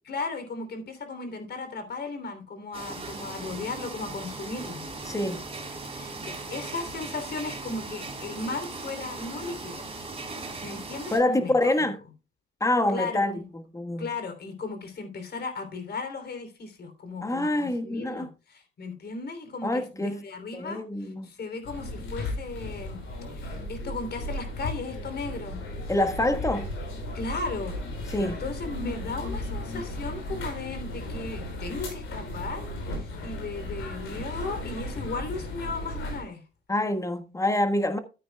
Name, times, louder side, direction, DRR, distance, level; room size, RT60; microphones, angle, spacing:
voice 1, 0.0-4.9 5.9-9.9 10.6-11.9 12.9-13.5 14.0-23.0 23.3-25.6 27.1-27.8 28.2-36.4, left 3 dB, 55° left, 3.2 m, -36 dB
sound 1, 2.7-11.2, right 3 dB, 30° right, 3.7 m, -38 dB
voice 2, 5.1-5.4 11.1-12.0 12.6-13.4 13.7-14.1 17.2-18.3 19.6-20.2 20.5-21.3 25.9-26.7 28.1-28.4 36.7-38.0, left 1 dB, 15° left, 1.4 m, -26 dB
sound 2, 21.6-36.2, left 1 dB, 90° left, 5.5 m, -35 dB
13.5 x 9.1 x 2.3 m
cardioid pair, 90°, 20 cm